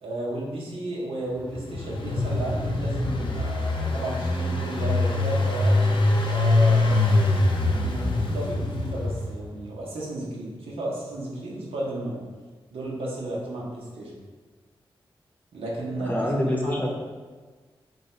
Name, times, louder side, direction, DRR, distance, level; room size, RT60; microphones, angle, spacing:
voice 1, 0.0-6.0 6.2-7.3 7.8-12.1 12.7-14.1 15.5-16.3 16.6-16.7, right 1 dB, 85° right, -5 dB, 0.7 m, -33 dB
Engine, 1.4-9.4, left 2 dB, 60° left, 0.5 m, -24 dB
voice 2, 16.0-16.9, left 1 dB, 15° left, -2 dB, 0.7 m, -25 dB
2.7 x 2.2 x 4.1 m, 1.4 s
cardioid pair, 50°, 9 cm